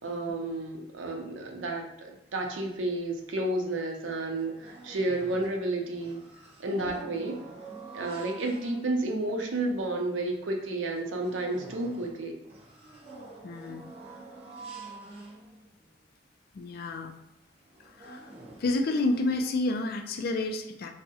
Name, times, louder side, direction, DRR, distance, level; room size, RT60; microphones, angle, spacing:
voice 1, 0.0-6.2 6.6-7.3 7.9-12.3, right 2 dB, 80° right, 2 dB, 0.5 m, -31 dB
sound 1, 3.6-3.7 4.0-5.7 5.9-9.2 9.7-9.8 10.2-10.3 10.8-15.9 16.5-16.6 16.9-17.1 17.6-19.4, right 3 dB, 30° right, 0.5 m, -47 dB
voice 2, 13.4-13.9 16.5-17.2 17.9-18.3 18.6-20.9, left 2 dB, 50° left, 5 dB, 0.3 m, -30 dB
3.4 x 2.0 x 2.7 m, 0.86 s
head